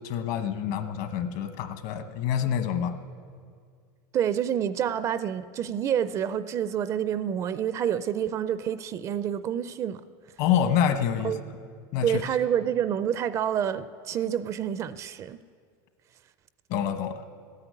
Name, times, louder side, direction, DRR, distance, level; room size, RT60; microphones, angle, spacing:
voice 1, 0.0-3.0 10.4-11.3 11.9-12.2 16.7-17.2, left 9 dB, 55° left, 9 dB, 1.1 m, -27 dB
voice 2, 4.1-10.0 11.2-11.4 12.0-15.4, right 9 dB, 30° right, 14 dB, 0.4 m, -28 dB
14.5 x 9.8 x 9.5 m, 2.1 s
supercardioid pair, 155°, 11 cm